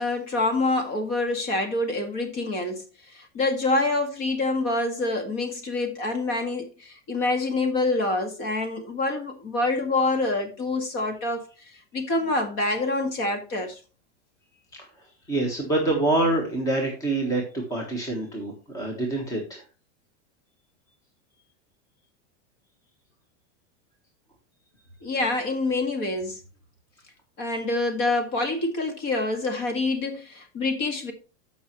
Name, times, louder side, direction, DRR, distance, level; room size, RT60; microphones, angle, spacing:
voice 1, 0.0-13.8 25.0-26.4 27.4-31.1, left 2 dB, 35° left, 1.9 m, -26 dB
voice 2, 15.3-19.6, right 2 dB, 10° left, 1.3 m, -26 dB
14.0 x 5.6 x 3.1 m
supercardioid pair, 175°, 35 cm